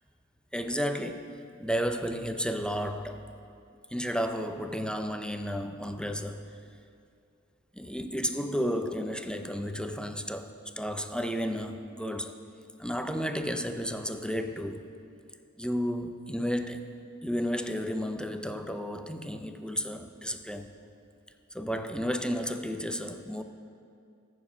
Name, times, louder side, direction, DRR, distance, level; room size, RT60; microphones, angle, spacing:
voice 1, 0.5-1.3 1.6-3.3 3.9-6.4 7.7-12.4 12.8-14.8 15.6-16.9 17.2-20.7 21.5-23.4, equal, 5° left, 7 dB, 0.6 m, -32 dB
14.5 x 5.0 x 5.5 m, 2.4 s
wide cardioid pair, 40°, 31 cm